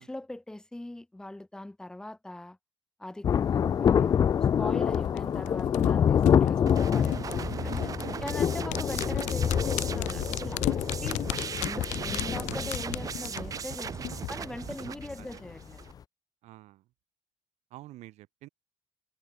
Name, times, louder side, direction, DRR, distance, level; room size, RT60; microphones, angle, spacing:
voice 1, 0.0-2.6 3.0-4.2 4.6-7.9 8.2-11.2 11.6-15.8, left 1 dB, 5° left, 2.2 m, -41 dB
Thunder, 3.2-15.2 15.5-15.6, left 8 dB, 30° left, 0.7 m, -27 dB
sound 1, 4.9-14.3 14.6-14.7, left 19 dB, 80° left, 1.9 m, -35 dB
sound 2, 6.7-15.9, right 7 dB, 30° right, 1.3 m, -38 dB
voice 2, 14.8-15.4 16.4-16.9 17.7-18.5, right 16 dB, 70° right, 5.4 m, -49 dB
cardioid pair, 155°, 12 cm